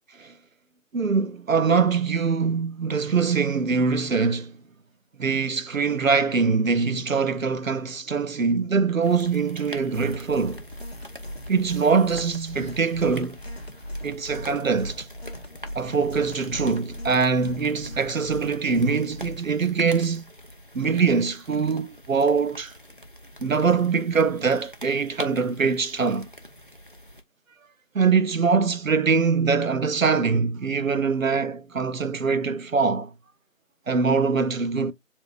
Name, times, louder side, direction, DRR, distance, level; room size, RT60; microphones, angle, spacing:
voice 1, 0.9-4.5 5.2-10.6 11.5-13.4 14.0-15.1 15.7-20.3 20.7-22.7 23.4-26.3 27.9-33.1 33.9-34.9, right 5 dB, 80° right, 0.8 m, -23 dB
sound 1, 9.0-27.2, equal, 40° right, 0.6 m, -45 dB
sound 2, 9.9-19.4, equal, 50° left, 0.9 m, -38 dB
7.2 x 2.7 x 2.4 m
figure-of-eight pair, 175°, 40 cm